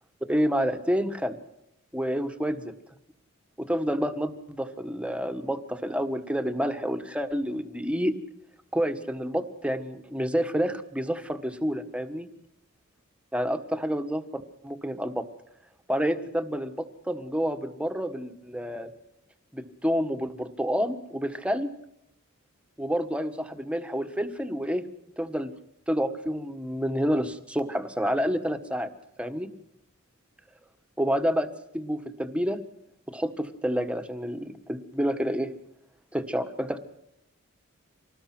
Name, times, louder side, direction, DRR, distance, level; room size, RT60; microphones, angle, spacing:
voice 1, 0.3-1.4 1.9-2.7 3.6-8.2 8.7-12.3 13.3-15.3 15.9-18.9 19.5-21.7 22.8-24.8 25.2-25.5 25.9-28.9 29.2-29.5 31.0-31.5 31.7-32.6 33.1-35.5 36.1-36.8, equal, 5° right, 8 dB, 1.5 m, -29 dB
25.5 x 19.5 x 6.1 m, 0.80 s
head